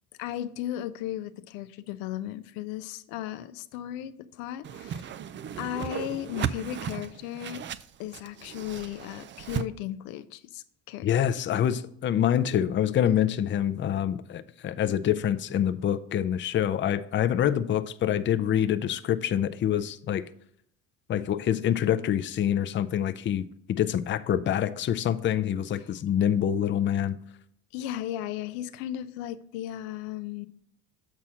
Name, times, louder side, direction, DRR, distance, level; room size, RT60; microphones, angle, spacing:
voice 1, 0.2-5.1 5.6-7.6 8.0-11.3 27.7-30.5, left 12 dB, 85° left, 0.6 m, -36 dB
Whoosh swoosh swish, 4.6-9.7, right 9 dB, 35° right, 0.4 m, -35 dB
voice 2, 11.0-20.3 21.1-27.2, left 10 dB, 35° left, 0.5 m, -26 dB
7.4 x 4.2 x 6.2 m
supercardioid pair, 85°, 36 cm